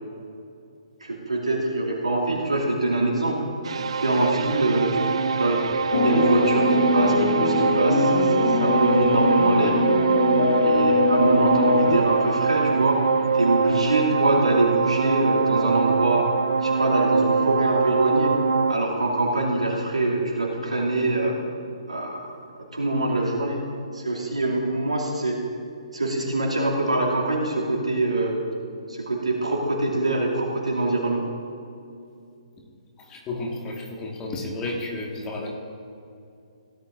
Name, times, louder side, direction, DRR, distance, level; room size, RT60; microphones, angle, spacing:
voice 1, 1.0-3.5 4.0-5.0 5.4-5.7 6.0-9.8 10.6-13.0 13.3-16.3 16.6-18.3 18.7-21.4 21.9-22.3 22.5-23.6 23.9-25.4 25.9-28.4 28.9-31.3, right 2 dB, 85° right, -3 dB, 2.5 m, -24 dB
sound 1, 3.6-18.7, right 5 dB, 60° right, 0.5 m, -23 dB
sound 2, 5.9-12.0, left 3 dB, 55° left, 1.0 m, -22 dB
voice 2, 33.1-35.5, left 2 dB, 20° left, -1 dB, 1.7 m, -32 dB
17.0 x 11.0 x 2.6 m, 2.5 s
figure-of-eight pair, 130°, 3 cm